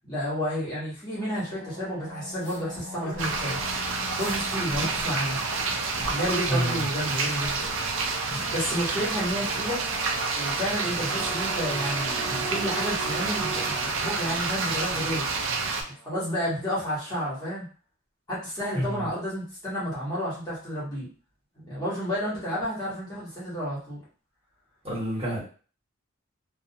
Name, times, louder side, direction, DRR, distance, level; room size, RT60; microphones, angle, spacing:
voice 1, 0.0-3.6 4.2-5.4 6.0-7.7 8.2-9.8 10.4-15.3 16.0-17.7 18.3-21.1 21.7-24.0, equal, 20° left, -8 dB, 1.1 m, -31 dB
sound 1, 1.1-16.9, equal, 45° right, 1.1 m, -43 dB
sound 2, 2.4-2.6 3.0-3.7 4.2-4.4 4.7-5.7 6.0-6.5 6.8-8.1, left 1 dB, 60° left, 0.7 m, -41 dB
sound 3, 3.2-15.8, right 4 dB, 65° right, 0.4 m, -29 dB
voice 2, 6.5-6.8 18.7-19.1 24.8-25.4, equal, 30° right, -8 dB, 1.3 m, -28 dB
2.6 x 2.1 x 2.7 m, 0.39 s
head